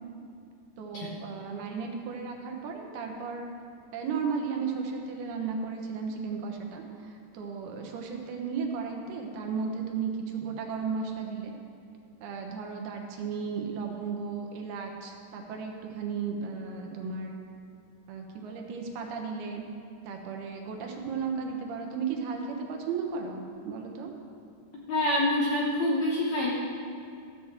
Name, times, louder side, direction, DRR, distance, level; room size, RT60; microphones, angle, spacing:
voice 1, 0.8-3.5 3.9-11.5 12.2-17.4 18.1-19.6 20.0-24.1, right 5 dB, 75° right, 2 dB, 3.0 m, -34 dB
voice 2, 24.9-26.5, left 1 dB, 70° left, -4 dB, 1.7 m, -26 dB
14.0 x 6.2 x 7.3 m, 2.4 s
omnidirectional pair, 4.6 m